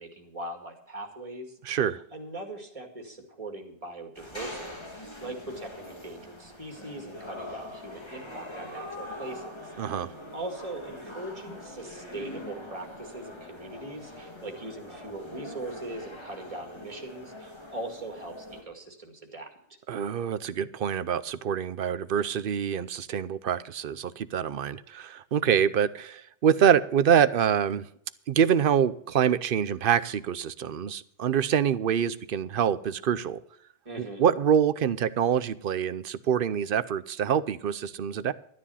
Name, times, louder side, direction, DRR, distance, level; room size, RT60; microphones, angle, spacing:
voice 1, 0.0-1.8 2.1-9.5 9.8-10.1 10.3-19.5 33.8-34.3, right 2 dB, 30° right, 3 dB, 2.3 m, -40 dB
voice 2, 1.6-2.0 9.8-10.1 19.9-27.9 28.3-33.4 34.0-38.3, right 8 dB, 55° right, 16 dB, 0.8 m, -25 dB
sound 1, 4.1-18.6, left 1 dB, 25° left, 2.3 m, -43 dB
12.5 x 10.0 x 5.6 m, 0.69 s
omnidirectional pair, 1.1 m